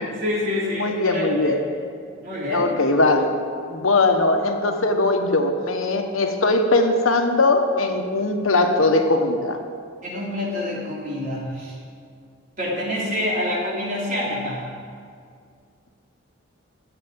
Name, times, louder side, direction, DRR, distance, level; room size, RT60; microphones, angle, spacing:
voice 1, 0.0-1.6 2.2-2.7 10.0-11.7 12.6-14.7, left 1 dB, 40° right, -5 dB, 3.6 m, -27 dB
voice 2, 0.8-1.6 2.5-3.3 3.7-9.6, left 2 dB, 85° left, 5 dB, 1.2 m, -20 dB
12.0 x 8.0 x 8.8 m, 2.2 s
head